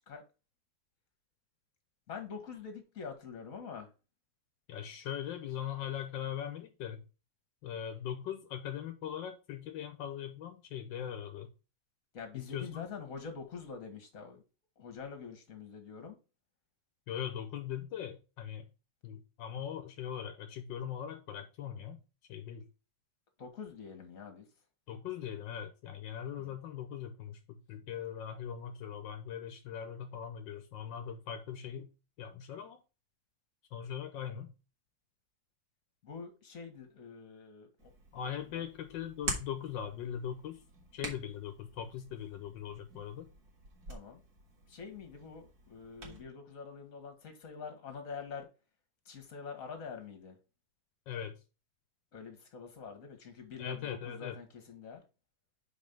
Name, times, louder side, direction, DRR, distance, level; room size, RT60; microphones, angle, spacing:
voice 1, 2.1-3.9 12.1-14.4 14.8-16.2 23.4-24.5 26.4-26.6 36.0-38.2 38.5-38.7 43.9-44.2 44.7-48.5 49.1-50.4 52.1-55.0, left 5 dB, 50° left, 1.9 m, -46 dB
voice 2, 4.7-7.0 7.6-11.5 12.3-12.8 17.1-18.7 19.0-22.0 22.3-22.7 24.9-31.9 32.2-32.8 33.7-34.5 38.1-40.6 40.9-43.3 51.1-51.4 53.6-54.3, left 9 dB, 80° left, 1.5 m, -40 dB
Hands, 37.8-46.2, right 2 dB, 60° right, 2.2 m, -46 dB
5.2 x 4.6 x 5.3 m
omnidirectional pair, 2.0 m